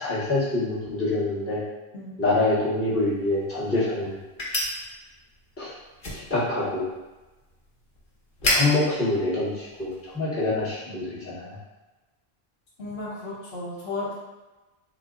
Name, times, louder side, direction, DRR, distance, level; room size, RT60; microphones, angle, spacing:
voice 1, 0.0-1.6 2.2-4.2 5.6-5.7 6.3-6.8 8.4-11.6, left 2 dB, 15° left, -9 dB, 1.1 m, -25 dB
sound 1, 3.0-10.2, left 1 dB, 55° left, 1.2 m, -33 dB
voice 2, 12.8-14.1, left 2 dB, 70° left, -6 dB, 1.2 m, -34 dB
3.9 x 2.1 x 3.7 m, 1.1 s
omnidirectional pair, 1.0 m